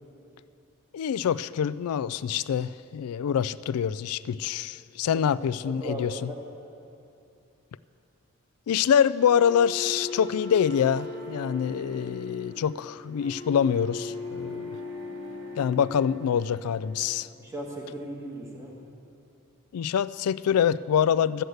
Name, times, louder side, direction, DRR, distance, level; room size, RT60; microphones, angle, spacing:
voice 1, 0.9-6.3 8.7-14.8 15.6-17.3 19.7-21.4, left 8 dB, 80° left, 17 dB, 0.3 m, -25 dB
voice 2, 5.6-6.4 17.3-18.8, right 1 dB, 15° right, -1 dB, 1.5 m, -37 dB
sound 1, 9.2-17.2, left 2 dB, 50° right, 2.4 m, -39 dB
13.0 x 8.0 x 7.9 m, 2.7 s
head